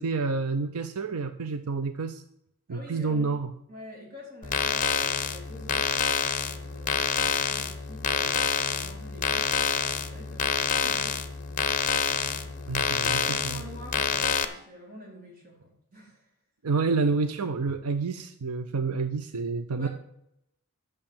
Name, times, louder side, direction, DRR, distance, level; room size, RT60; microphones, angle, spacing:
voice 1, 0.0-2.2 2.7-3.5 12.7-13.2 16.6-19.9, right 4 dB, 80° right, 10 dB, 0.6 m, -28 dB
voice 2, 2.7-3.3 3.7-5.8 6.4-11.2 11.8-16.3 16.7-16.8 19.8-19.9, equal, 40° right, -3 dB, 4.5 m, -47 dB
sound 1, 4.4-14.5, left 6 dB, 35° left, 0.9 m, -27 dB
11.0 x 6.5 x 7.3 m, 0.77 s
head